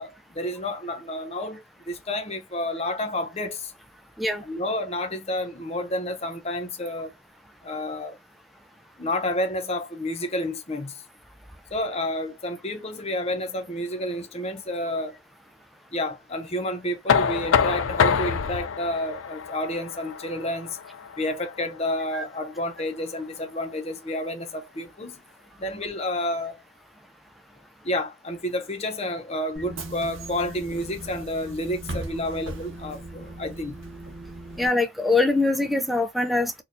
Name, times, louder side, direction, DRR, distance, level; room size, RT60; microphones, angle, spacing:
voice 1, 0.0-1.6 1.9-3.7 4.4-7.1 7.6-8.2 9.0-11.0 11.7-15.2 15.9-20.8 21.2-25.2 25.6-26.6 27.8-33.8, left 1 dB, 30° left, 0.7 m, -30 dB
Knock, 17.1-22.9, left 7 dB, 80° left, 0.5 m, -26 dB
Bus / Engine, 29.6-34.7, right 2 dB, 75° right, 1.0 m, -38 dB
voice 2, 34.6-36.6, left 2 dB, ahead, 0.4 m, -23 dB
4.2 x 2.3 x 2.7 m
head